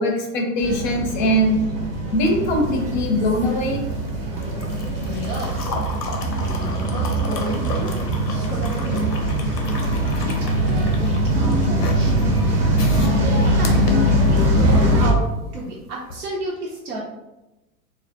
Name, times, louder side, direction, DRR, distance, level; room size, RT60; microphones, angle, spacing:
voice 1, 0.0-1.6 2.1-3.8 5.7-5.8, equal, 35° left, 1 dB, 0.5 m, -21 dB
sound 1, 0.6-15.1, right 1 dB, 40° right, 0.7 m, -21 dB
sound 2, 2.4-14.7 16.0-16.2, left 3 dB, 90° left, 0.6 m, -35 dB
voice 2, 5.0-5.7 6.3-7.9 8.3-9.1 10.0-10.3 10.6-12.4 13.6-13.9 14.3-15.3 15.5-17.0, right 1 dB, 75° right, -5 dB, 0.7 m, -32 dB
2.2 x 2.1 x 2.8 m, 0.97 s
figure-of-eight pair, 95°, 46 cm